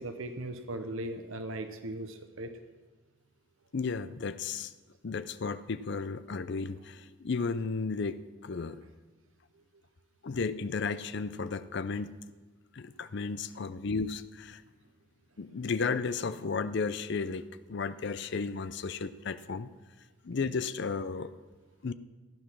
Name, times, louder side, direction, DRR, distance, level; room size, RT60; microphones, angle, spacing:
voice 1, 0.0-2.6, right 1 dB, 85° right, 8 dB, 0.9 m, -38 dB
voice 2, 3.7-4.7 5.0-8.8 10.2-12.1 12.7-14.6 15.4-19.7 20.2-21.3 21.8-21.9, left 4 dB, 60° left, 13 dB, 0.5 m, -34 dB
15.0 x 9.9 x 6.1 m, 1.3 s
head